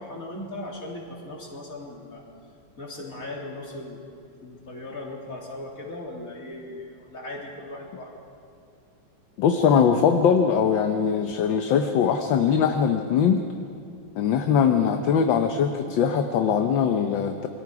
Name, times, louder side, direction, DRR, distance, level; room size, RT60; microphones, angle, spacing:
voice 1, 0.0-2.2 2.8-4.0 4.4-8.1, left 1 dB, 40° left, -2 dB, 3.7 m, -38 dB
voice 2, 9.4-13.4 14.2-17.5, left 7 dB, 70° left, 6 dB, 1.6 m, -21 dB
27.5 x 22.5 x 4.8 m, 2.4 s
omnidirectional pair, 2.2 m